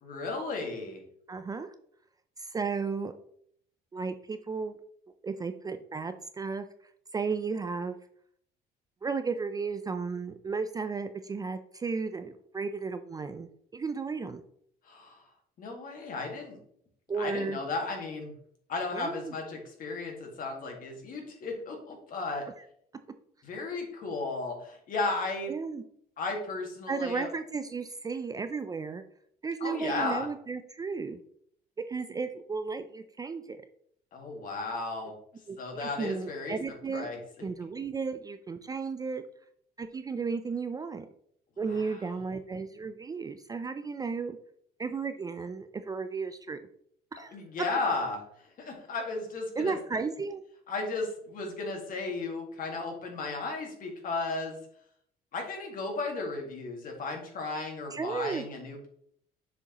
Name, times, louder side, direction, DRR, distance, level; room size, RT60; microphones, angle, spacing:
voice 1, 0.0-1.0 14.9-15.2 15.6-16.6 17.2-18.3 18.7-22.5 23.4-25.5 26.2-27.3 29.6-30.3 34.1-35.2 35.6-36.6 36.9-37.2 41.7-42.0 47.3-48.2 48.6-49.8 50.7-54.6 55.3-58.9, left 3 dB, 55° left, 2 dB, 1.8 m, -34 dB
voice 2, 1.3-1.7 2.4-3.1 3.9-4.8 5.2-6.6 7.1-8.0 9.0-14.4 17.1-17.6 18.9-19.3 25.5-25.8 26.9-29.0 29.4-31.2 31.9-33.6 35.5-37.1 37.4-39.2 39.8-41.1 41.6-44.4 44.8-46.7 47.1-47.4 49.5-50.4 57.9-58.4, right 4 dB, 20° right, 9 dB, 0.4 m, -34 dB
6.8 x 4.9 x 2.9 m, 0.66 s
cardioid pair, 110°, 17 cm